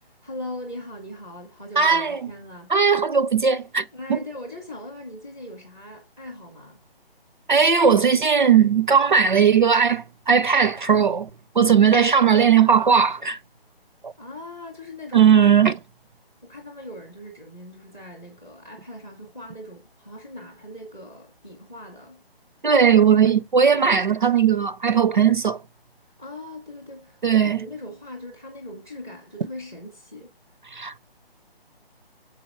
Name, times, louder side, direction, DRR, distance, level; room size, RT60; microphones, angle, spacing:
voice 1, 0.0-2.9 3.9-6.8 14.2-15.3 16.4-22.2 26.0-30.3, left 1 dB, 5° left, 0.5 m, -40 dB
voice 2, 1.8-2.2 2.7-4.2 7.5-11.3 11.6-13.4 14.0-14.1 15.1-15.8 22.6-25.6 27.2-27.6 30.7-31.0, right 7 dB, 55° right, 0.4 m, -18 dB
7.0 x 4.7 x 4.4 m
figure-of-eight pair, 145°, 30 cm